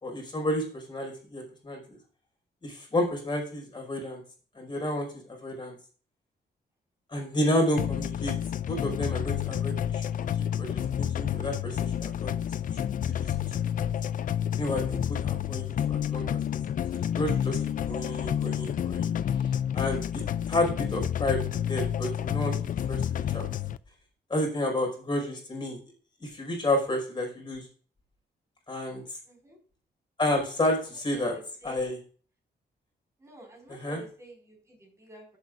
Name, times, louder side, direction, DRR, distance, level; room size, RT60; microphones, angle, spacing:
voice 1, 0.0-1.8 2.6-4.2 4.6-5.7 7.1-8.3 8.6-10.0 10.6-12.4 13.2-13.3 13.8-13.9 14.6-16.4 16.9-17.6 17.9-19.1 19.7-20.2 20.5-22.6 22.9-23.5 24.3-25.8 26.2-27.7 28.7-29.0 30.2-31.3 31.6-32.0 33.7-34.0, left 1 dB, 25° left, 0 dB, 5.3 m, -30 dB
sound 1, 7.8-23.8, left 10 dB, 50° left, 0.4 m, -29 dB
voice 2, 29.2-29.6 30.9-31.8 33.2-35.4, right 1 dB, 15° right, -1 dB, 5.2 m, -49 dB
15.0 x 8.2 x 2.6 m, 0.41 s
wide cardioid pair, 145°, 18 cm